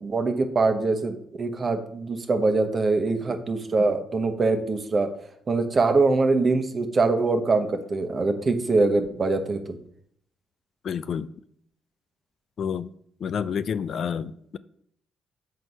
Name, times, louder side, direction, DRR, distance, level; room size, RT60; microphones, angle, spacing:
voice 1, 0.0-5.1 5.5-9.8, right 3 dB, 40° right, 1.0 m, -23 dB
voice 2, 10.8-11.3 12.6-12.9 13.2-14.6, left 7 dB, 60° left, 0.3 m, -29 dB
6.2 x 4.4 x 5.5 m
cardioid pair, 90°, 0 cm